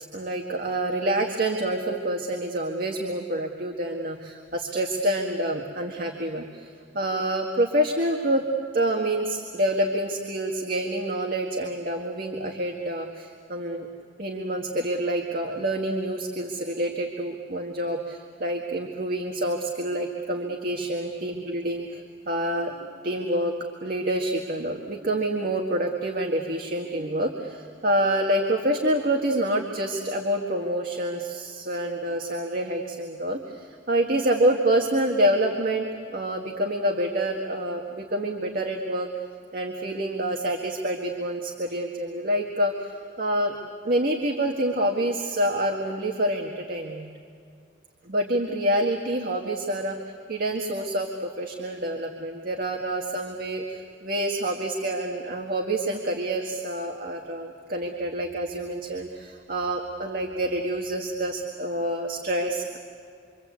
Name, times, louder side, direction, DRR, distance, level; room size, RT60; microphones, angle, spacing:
voice 1, 0.1-8.4 8.7-13.9 14.2-22.8 23.0-23.5 23.8-35.9 36.1-39.1 39.5-43.6 43.8-47.1 48.0-50.0 50.3-62.8, right 1 dB, 50° right, 2 dB, 1.8 m, -27 dB
26.0 x 25.5 x 8.5 m, 2.3 s
head